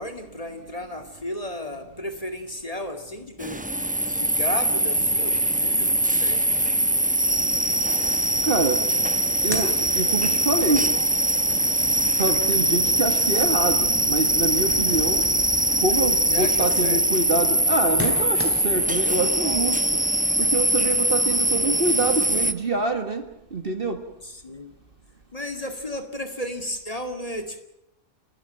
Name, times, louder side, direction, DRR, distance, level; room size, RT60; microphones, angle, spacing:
voice 1, 0.0-3.6 4.2-6.5 15.1-15.2 16.3-17.0 19.9-20.2 24.2-24.7 25.3-27.6, left 1 dB, 25° left, 6 dB, 2.1 m, -34 dB
sound 1, 3.4-22.5, right 1 dB, 5° right, 0.7 m, -22 dB
voice 2, 8.4-8.9 9.4-11.0 12.2-15.3 15.8-19.9 20.4-24.1, right 2 dB, 40° right, 8 dB, 1.8 m, -26 dB
sound 2, 9.1-10.6 11.0-18.9, equal, 10° left, 3.7 m, -39 dB
29.5 x 13.0 x 8.8 m, 0.87 s
omnidirectional pair, 1.5 m